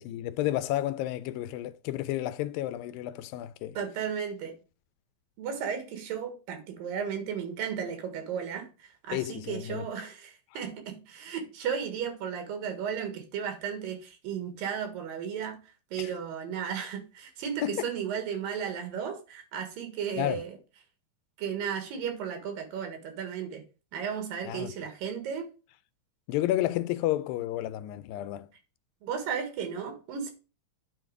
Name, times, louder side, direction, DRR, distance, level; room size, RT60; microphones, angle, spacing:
voice 1, 0.0-3.8 9.1-9.9 16.0-16.1 17.6-17.9 20.2-20.4 24.5-24.7 26.3-28.5, left 14 dB, 90° left, 2.3 m, -31 dB
voice 2, 3.7-4.6 5.4-15.6 15.9-20.6 21.4-23.6 23.9-25.5 29.0-30.3, right 7 dB, 85° right, 3.3 m, -34 dB
9.4 x 3.9 x 4.7 m
omnidirectional pair, 4.0 m